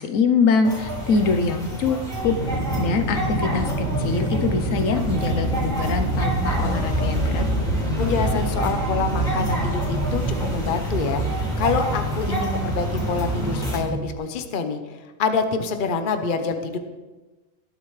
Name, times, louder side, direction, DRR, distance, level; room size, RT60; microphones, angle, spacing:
voice 1, 0.0-2.4 2.8-7.5, left 4 dB, 70° left, 7 dB, 1.2 m, -23 dB
sound 1, 0.6-13.8, right 1 dB, 5° left, 3.6 m, -29 dB
Aircraft, 2.2-11.6, right 1 dB, 55° right, 4.8 m, -27 dB
sound 2, 6.1-14.2, right 2 dB, 15° right, 1.2 m, -30 dB
voice 2, 8.0-11.2 11.6-14.8 15.2-16.8, left 5 dB, 45° left, 7 dB, 0.9 m, -26 dB
20.5 x 7.9 x 3.3 m, 1.2 s
omnidirectional pair, 1.4 m